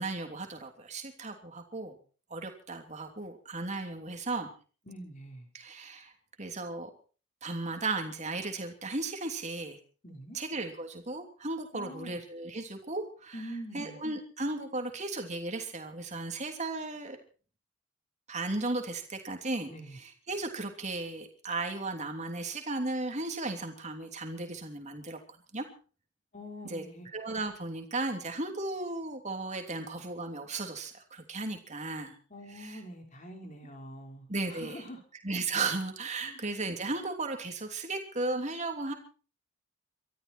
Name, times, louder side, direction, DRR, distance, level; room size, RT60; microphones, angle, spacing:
voice 1, 0.0-2.0 2.3-4.5 5.5-6.1 6.4-6.9 7.4-9.8 10.3-13.4 13.7-17.2 18.3-25.2 25.5-25.6 26.7-26.8 27.1-32.1 32.6-32.8 34.3-34.8 35.2-38.9, right 2 dB, 35° right, 4 dB, 3.2 m, -35 dB
voice 2, 4.9-5.5 10.0-10.4 11.7-12.2 13.3-14.0 19.7-20.0 26.3-27.1 32.3-35.0 36.2-36.4, equal, 35° left, 3 dB, 4.7 m, -45 dB
23.5 x 13.5 x 4.5 m, 0.39 s
head